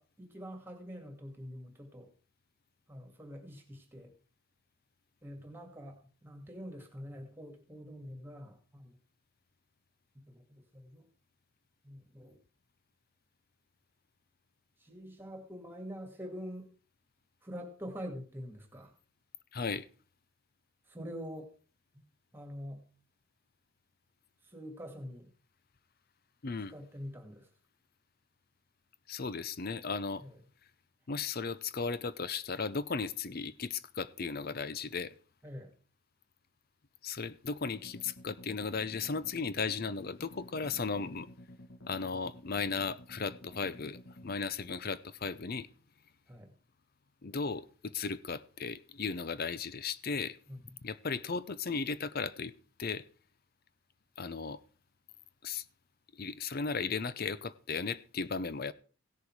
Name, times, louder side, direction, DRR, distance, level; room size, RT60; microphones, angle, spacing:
voice 1, 0.0-2.1 2.9-4.1 5.2-9.0 10.1-11.1 11.8-12.4 14.8-16.7 17.4-18.9 20.9-21.5 21.9-22.0 22.3-22.8 24.4-25.3 26.7-27.5 30.2-30.4 35.4-35.7 46.3-46.5 50.5-50.6, equal, 10° right, 2.2 m, -45 dB
voice 2, 19.5-19.9 26.4-26.7 29.1-30.2 31.1-35.1 37.0-41.3 41.9-45.7 47.2-50.4 50.8-52.5 52.8-53.1 54.2-54.6 55.4-55.6 56.1-58.7, left 5 dB, 45° left, 0.6 m, -36 dB
sound 1, 37.6-44.4, left 1 dB, 65° left, 1.2 m, -53 dB
16.5 x 6.8 x 4.7 m
head